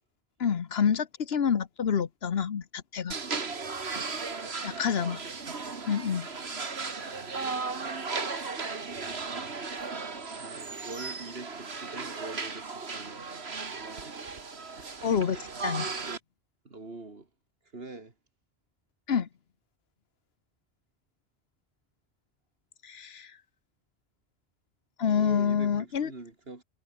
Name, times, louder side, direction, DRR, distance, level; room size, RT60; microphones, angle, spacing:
voice 1, 0.4-3.2 4.6-5.2 5.9-6.3 15.0-15.9 19.1-19.3 22.8-23.3 25.0-26.1, left 7 dB, 80° left, 1.3 m, -28 dB
sound 1, 3.1-16.2, right 4 dB, 90° right, 2.3 m, -36 dB
voice 2, 4.7-5.0 8.9-9.6 10.4-13.2 16.6-17.3 17.7-18.1 25.1-26.6, right 3 dB, 70° right, 3.1 m, -44 dB
omnidirectional pair, 1.0 m